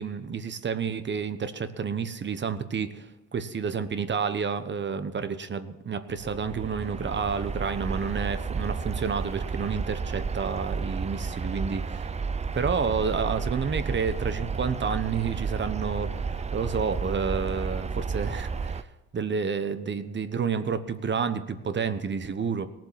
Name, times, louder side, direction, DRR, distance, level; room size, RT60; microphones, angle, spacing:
voice 1, 0.0-12.1 12.5-18.9 19.1-22.7, right 6 dB, 40° right, 11 dB, 1.1 m, -30 dB
sound 1, 6.2-18.8, right 5 dB, 20° right, 0.5 m, -32 dB
18.0 x 7.6 x 7.5 m, 1.2 s
cardioid pair, 90°, 30 cm